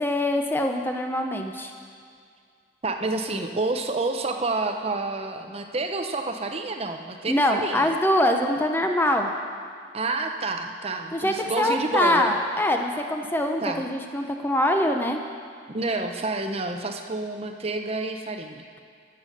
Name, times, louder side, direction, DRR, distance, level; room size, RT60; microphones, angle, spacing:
voice 1, 0.0-1.7 7.3-9.3 11.1-15.2, left 1 dB, 10° left, 4 dB, 0.6 m, -23 dB
voice 2, 2.8-7.9 9.9-12.3 13.6-13.8 15.7-18.6, right 3 dB, 30° right, 5 dB, 0.6 m, -29 dB
14.0 x 6.8 x 6.4 m, 2.2 s
head